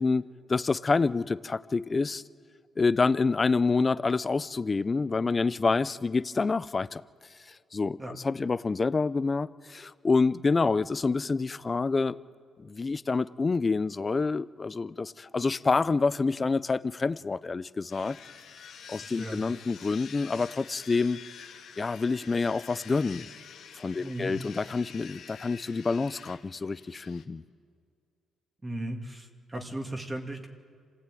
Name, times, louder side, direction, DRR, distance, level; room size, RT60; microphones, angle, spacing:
voice 1, 0.0-2.2 2.8-7.0 7.7-8.0 8.2-12.2 12.6-18.2 18.9-21.2 21.8-23.3 23.8-27.4, left 4 dB, 30° left, 17 dB, 0.6 m, -27 dB
sound 1, 17.9-27.2, left 7 dB, 70° left, 2.3 m, -48 dB
voice 2, 19.0-19.4 24.0-24.3 28.6-30.5, right 1 dB, 20° right, 3 dB, 2.5 m, -36 dB
26.5 x 17.0 x 9.2 m, 2.2 s
cardioid pair, 90°, 0 cm